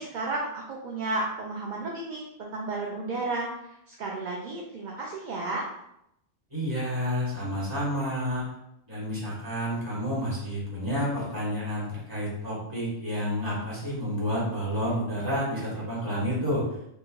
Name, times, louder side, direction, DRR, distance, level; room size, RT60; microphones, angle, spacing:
voice 1, 0.0-5.7, right 2 dB, 55° right, -3 dB, 0.5 m, -33 dB
voice 2, 6.5-8.4 8.9-16.7, equal, 20° right, -7 dB, 1.2 m, -30 dB
4.5 x 2.1 x 2.2 m, 0.79 s
omnidirectional pair, 1.2 m